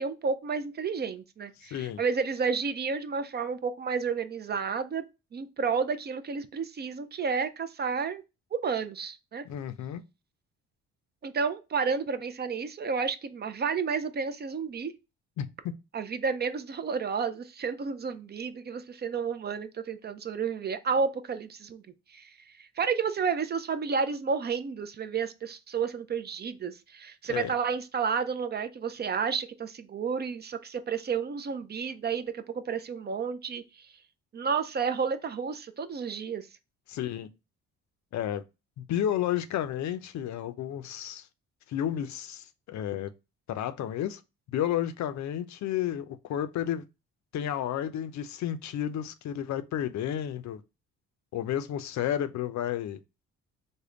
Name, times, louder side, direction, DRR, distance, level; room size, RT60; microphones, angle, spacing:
voice 1, 0.0-5.0 5.3-8.2 8.5-9.4 11.2-14.9 15.9-21.8 22.1-22.3 22.6-33.9 34.3-36.5, right 5 dB, 35° right, 0.4 m, -31 dB
voice 2, 1.6-2.0 9.4-10.0 15.4-15.5 27.3-27.5 36.9-37.3 38.1-38.4 38.8-41.3 41.7-43.1 43.5-44.2 44.5-46.8 47.3-50.6 51.3-53.0, left 10 dB, 70° left, 0.5 m, -31 dB
3.5 x 2.1 x 3.7 m
cardioid pair, 90°, 30 cm